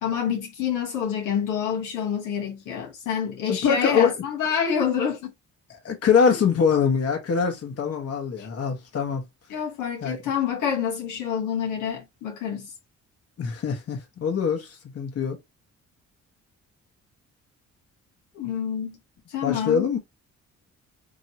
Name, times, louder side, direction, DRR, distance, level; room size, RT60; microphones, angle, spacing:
voice 1, 0.0-5.3 6.3-6.4 8.4-8.5 9.5-12.7 18.3-19.0 19.3-19.9, left 8 dB, 85° left, 1.1 m, -27 dB
voice 2, 3.5-4.1 5.7-9.2 10.0-10.2 13.4-15.4 19.4-20.0, left 6 dB, 55° left, 1.3 m, -23 dB
3.0 x 2.7 x 2.8 m
cardioid pair, 90°, 30 cm